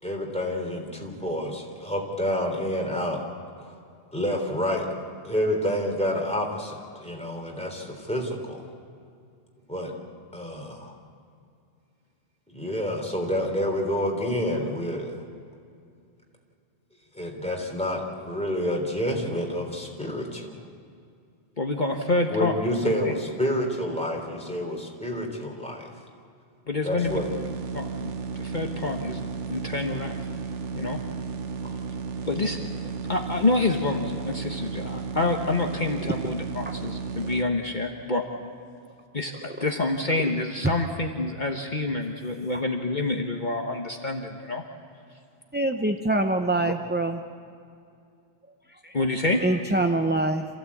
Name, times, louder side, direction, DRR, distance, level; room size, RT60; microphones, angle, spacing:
voice 1, 0.0-3.2 3.6-3.7 4.1-4.9 5.2-8.6 9.7-9.9 10.3-10.9 12.5-15.1 17.1-20.5 22.3-25.9 26.8-27.2, equal, 5° left, 0 dB, 3.5 m, -28 dB
voice 2, 21.6-22.6 22.8-23.1 26.7-27.2 27.7-30.2 30.7-31.0 32.2-32.6 33.1-38.2 39.1-44.6 46.6-46.7 48.9-49.4, left 2 dB, 45° left, 2 dB, 1.3 m, -27 dB
sound 1, 27.0-37.4, right 5 dB, 85° right, 1.3 m, -34 dB
voice 3, 45.5-47.2 48.8-48.9 49.4-50.5, right 2 dB, 10° right, 5 dB, 0.6 m, -24 dB
27.0 x 15.5 x 8.5 m, 2.4 s
omnidirectional pair, 1.2 m